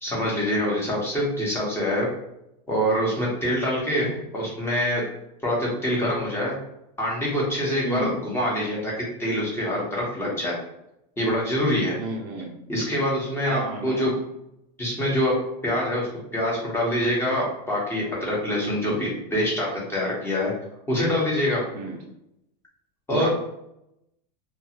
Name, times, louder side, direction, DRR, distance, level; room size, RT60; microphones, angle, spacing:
voice 1, 0.0-2.1 2.7-4.0 4.3-5.0 5.4-6.5 7.0-8.9 9.2-10.6 11.2-12.0 12.7-14.1 14.8-15.3 15.6-20.5 20.9-21.6 23.1-23.3, equal, 10° left, -5 dB, 1.0 m, -25 dB
voice 2, 7.8-8.2 12.0-12.5 13.5-14.1 18.6-19.0 21.7-22.0 23.1-23.3, right 3 dB, 45° right, 1 dB, 0.5 m, -31 dB
2.4 x 2.3 x 2.9 m, 0.82 s
supercardioid pair, 125°, 21 cm